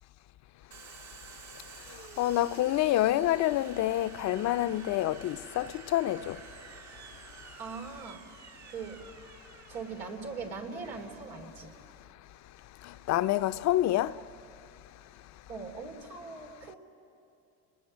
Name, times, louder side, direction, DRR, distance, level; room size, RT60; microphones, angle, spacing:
Domestic sounds home sounds, 0.7-12.1, right 6 dB, 50° right, 1.4 m, -51 dB
voice 1, 1.9-6.4 12.8-14.2, left 14 dB, 50° left, 0.6 m, -28 dB
voice 2, 7.6-8.2 8.6-9.0 9.7-11.7 15.5-16.8, right 4 dB, 90° right, 3.1 m, -40 dB
29.5 x 21.0 x 6.3 m
supercardioid pair, 100°, 36 cm